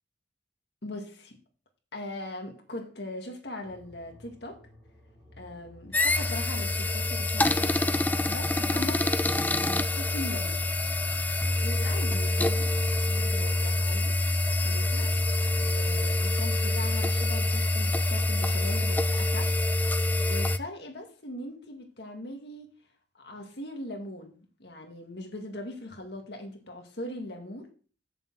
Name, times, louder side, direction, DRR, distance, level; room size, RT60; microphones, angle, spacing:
voice 1, 0.8-1.4 1.9-4.6 5.4-9.1 9.6-10.6 11.4-12.7 13.1-14.2 14.6-15.1 15.6-19.5 20.2-22.7 23.1-27.7, left 1 dB, 65° left, 1.9 m, -40 dB
sound 1, 3.6-16.2, left 1 dB, 20° right, 3.4 m, -51 dB
sound 2, 5.9-20.6, left 2 dB, 10° left, 0.3 m, -26 dB
6.9 x 6.3 x 7.6 m
head